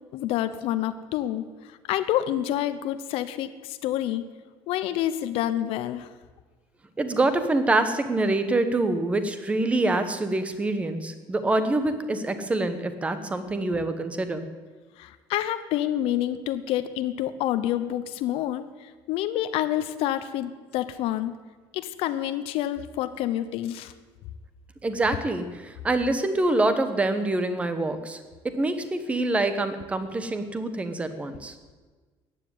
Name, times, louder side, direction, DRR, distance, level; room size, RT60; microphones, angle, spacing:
voice 1, 0.1-4.2 4.7-6.1 15.0-21.3 21.7-23.9, left 12 dB, 70° left, 11 dB, 0.9 m, -28 dB
voice 2, 7.0-14.4 24.8-28.2 28.4-31.5, right 2 dB, 15° right, 10 dB, 1.1 m, -25 dB
14.5 x 9.8 x 9.6 m, 1.4 s
cardioid pair, 180°, 10 cm